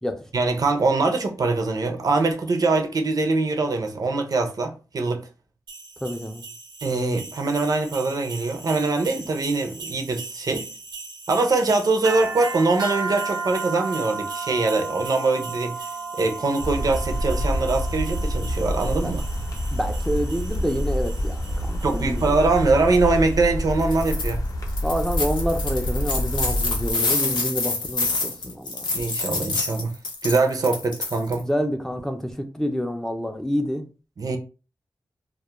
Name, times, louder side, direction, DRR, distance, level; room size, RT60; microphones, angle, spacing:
voice 1, 0.3-5.3 6.8-10.7 11.3-15.8 16.1-19.2 21.8-24.4 28.9-29.9 30.2-31.5 34.2-34.4, right 3 dB, 55° right, 0.5 m, -23 dB
sound 1, 5.7-23.4, right 4 dB, 90° right, 0.8 m, -35 dB
voice 2, 6.0-6.4 19.0-19.1 19.7-22.3 24.8-28.9 31.4-33.8, equal, 5° left, 0.4 m, -28 dB
sound 2, 16.6-26.9, equal, 50° left, 0.6 m, -27 dB
sound 3, 23.8-24.3 24.7-31.4, left 3 dB, 90° left, 0.7 m, -27 dB
2.3 x 2.0 x 2.9 m
wide cardioid pair, 80°, 8 cm